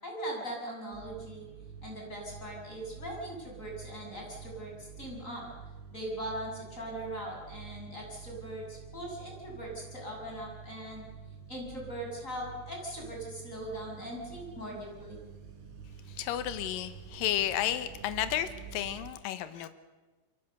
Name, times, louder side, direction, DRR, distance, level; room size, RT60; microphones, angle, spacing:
voice 1, 0.0-1.5 1.8-5.5 5.9-11.1 11.5-15.2, right 1 dB, 15° left, -1 dB, 7.1 m, -40 dB
sound 1, 0.9-19.1, right 6 dB, 80° right, 5.8 m, -48 dB
voice 2, 16.1-19.7, left 11 dB, 80° left, 10 dB, 2.0 m, -32 dB
27.5 x 23.5 x 6.9 m, 1.2 s
omnidirectional pair, 5.8 m